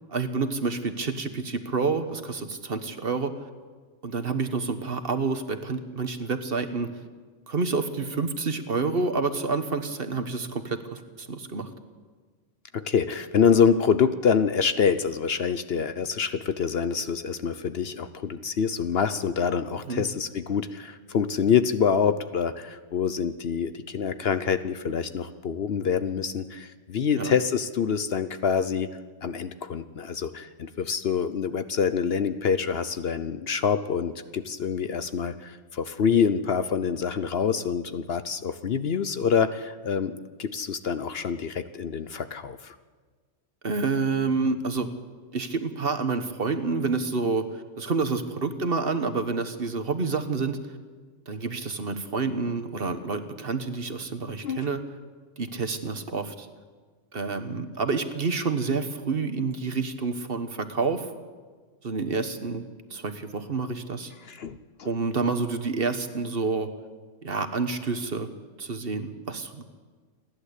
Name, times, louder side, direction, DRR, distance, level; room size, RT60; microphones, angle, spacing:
voice 1, 0.1-3.5 4.0-6.9 7.5-11.7 19.9-20.0 27.1-27.3 43.6-44.9 45.3-50.6 51.3-54.8 55.4-56.5 57.1-61.1 61.8-62.6 62.9-64.1 64.8-66.7 67.2-68.3 68.6-69.6, right 4 dB, 50° right, 9 dB, 1.4 m, -28 dB
voice 2, 12.7-28.9 29.2-42.8 54.4-54.6 64.3-64.6, left 6 dB, 55° left, 12 dB, 0.9 m, -26 dB
28.5 x 11.5 x 8.3 m, 1.5 s
omnidirectional pair, 1.3 m